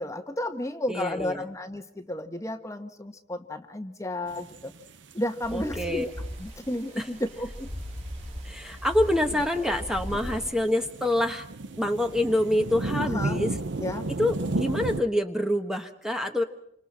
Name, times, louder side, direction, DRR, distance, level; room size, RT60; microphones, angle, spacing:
voice 1, 0.0-4.7 5.1-6.1 6.4-7.7 13.0-13.4 13.8-14.1, left 1 dB, 15° left, 7 dB, 1.3 m, -32 dB
voice 2, 0.9-1.5 5.5-6.0 7.0-7.1 8.4-11.5 11.8-13.5 14.2-16.4, left 1 dB, 5° right, 5 dB, 1.2 m, -26 dB
sound 1, 4.3-5.5 5.9-6.0 6.3-6.6 7.2-7.4 7.7-7.8 8.1-15.0, right 2 dB, 85° right, 0.9 m, -33 dB
sound 2, 5.4-10.5, equal, 40° right, 4.5 m, -39 dB
29.0 x 26.0 x 4.3 m, 0.74 s
head